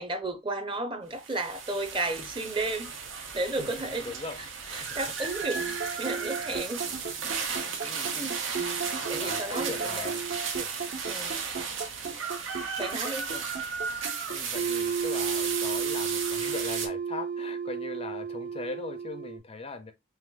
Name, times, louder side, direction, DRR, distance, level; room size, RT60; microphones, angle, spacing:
voice 1, 0.0-4.1 4.7-6.8 8.1-8.4 9.1-10.1 11.1-11.4 12.8-13.3, right 2 dB, 25° right, 0.8 m, -33 dB
sound 1, 1.1-16.9, right 6 dB, 90° right, 1.2 m, -35 dB
voice 2, 3.6-4.4 4.8-5.3 5.8-6.2 6.8-7.1 7.8-8.3 8.8-10.3 10.5-10.7 13.3-13.5 14.3-19.9, left 3 dB, 30° left, 0.5 m, -40 dB
sound 2, 5.4-19.4, right 6 dB, 65° right, 1.5 m, -33 dB
5.7 x 3.0 x 2.4 m
head